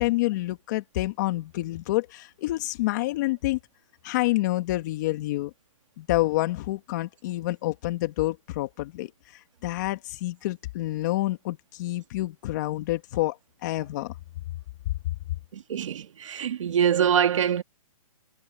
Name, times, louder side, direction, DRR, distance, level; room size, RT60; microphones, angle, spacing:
voice 1, 0.0-3.6 4.0-5.5 6.0-14.1, left 18 dB, 30° left, 2.0 m, -28 dB
voice 2, 15.5-17.6, right 8 dB, 55° right, 2.1 m, -24 dB
hypercardioid pair, 165°, 19 cm